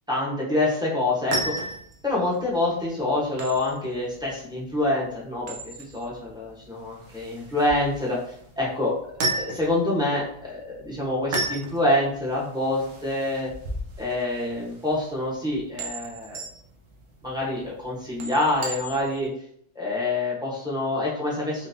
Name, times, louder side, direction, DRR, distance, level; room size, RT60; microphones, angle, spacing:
voice 1, 0.1-1.7 2.0-8.2 8.6-8.9 9.2-13.5 14.0-16.4 17.2-19.3 19.7-21.7, left 2 dB, 5° right, -6 dB, 0.9 m, -26 dB
sound 1, 1.0-19.3, right 2 dB, 60° right, 1.0 m, -35 dB
3.9 x 3.3 x 2.7 m, 0.67 s
omnidirectional pair, 1.6 m